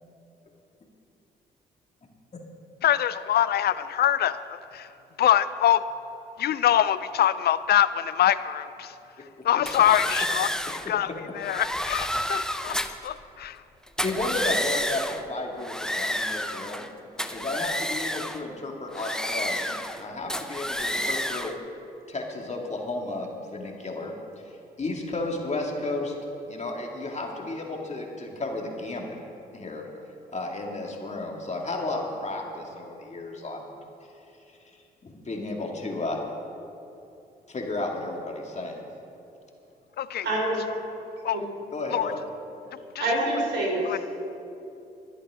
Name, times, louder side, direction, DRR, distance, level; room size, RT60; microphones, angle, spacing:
voice 1, 2.8-4.9 5.2-5.8 6.4-9.0 9.4-11.1 11.3-12.8 13.0-13.6 40.0-40.3 41.2-41.4 41.9-42.1 42.9-43.0 43.9-44.0, left 11 dB, 60° left, 15 dB, 0.4 m, -24 dB
sound 1, 9.7-10.9 11.4-13.1 13.9-15.2 15.6-16.9 17.2-18.4 18.9-20.0 20.3-21.6, left 1 dB, 5° left, 0.8 m, -30 dB
voice 2, 14.0-16.9 17.3-21.5 22.1-24.1 24.4-26.1 26.5-29.2 29.5-29.8 30.3-33.6 35.0-36.2 37.5-38.8 41.7-42.2, left 2 dB, 35° left, 0 dB, 2.4 m, -33 dB
voice 3, 40.2-40.6 41.3-41.4 43.0-44.0, right 1 dB, 70° right, -2 dB, 3.6 m, -26 dB
24.0 x 8.3 x 3.8 m, 2.8 s
hypercardioid pair, 50°, 19 cm